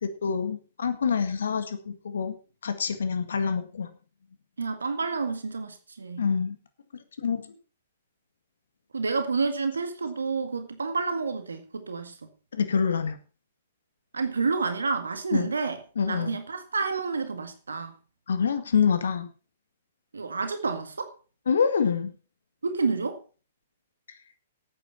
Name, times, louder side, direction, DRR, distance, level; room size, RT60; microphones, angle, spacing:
voice 1, 0.0-2.4 2.6-3.9 6.2-6.5 7.2-7.5 12.5-13.2 15.3-15.5 16.0-16.4 18.3-19.3 21.5-22.1, left 6 dB, 70° left, 1.8 m, -26 dB
voice 2, 4.6-6.3 8.9-12.2 14.1-15.8 16.1-17.9 20.1-21.1 22.6-23.2, right 4 dB, 80° right, 1.8 m, -29 dB
12.0 x 9.1 x 5.8 m
figure-of-eight pair, 120°, 0 cm